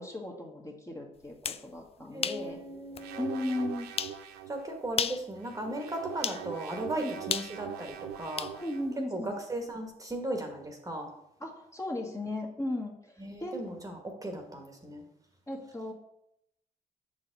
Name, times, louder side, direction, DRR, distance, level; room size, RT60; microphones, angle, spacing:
voice 1, 0.0-2.6 3.2-3.9 7.0-7.1 8.6-9.3 11.4-13.6 15.5-15.9, left 1 dB, 20° left, 0 dB, 1.5 m, -36 dB
sound 1, 1.2-1.6 2.2-2.4 3.0-3.1 4.0-4.2 4.9-5.3 6.2-6.4 7.3-8.6, left 7 dB, 35° left, 0.4 m, -33 dB
voice 2, 2.1-3.5 4.5-8.5 9.1-11.1 13.2-15.0, right 1 dB, 20° right, 2 dB, 1.3 m, -37 dB
sound 2, 3.0-4.6 5.4-9.0, right 9 dB, 80° right, 0.5 m, -42 dB
6.8 x 4.1 x 4.0 m, 0.79 s
supercardioid pair, 55°, 17 cm